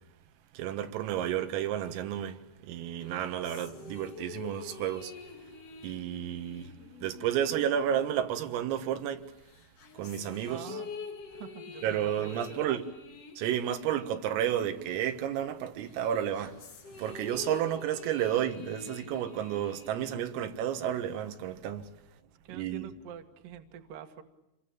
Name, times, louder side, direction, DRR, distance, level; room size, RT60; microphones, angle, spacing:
voice 1, 0.6-5.1 5.8-6.7 7.0-9.2 10.0-10.6 11.8-12.9 13.4-16.6 17.0-21.9 22.5-22.9, right 10 dB, 85° right, 4.1 m, -31 dB
sound 1, 3.0-8.9 9.5-15.5 15.9-21.0, left 5 dB, 65° left, 1.5 m, -47 dB
voice 2, 10.4-10.9 11.3-12.7 22.4-24.2, right 8 dB, 60° right, 2.6 m, -45 dB
27.5 x 22.5 x 8.8 m
omnidirectional pair, 5.8 m